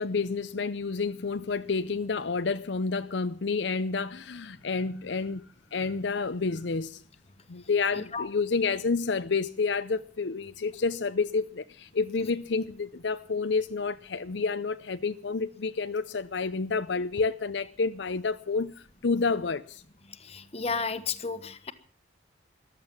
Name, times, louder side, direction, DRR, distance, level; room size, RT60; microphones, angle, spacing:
voice 1, 0.0-5.4 5.7-7.0 7.5-19.8, left 4 dB, 75° left, 0.6 m, -29 dB
voice 2, 7.9-8.3 20.2-21.7, left 4 dB, 35° left, 1.3 m, -33 dB
14.5 x 12.5 x 7.3 m
head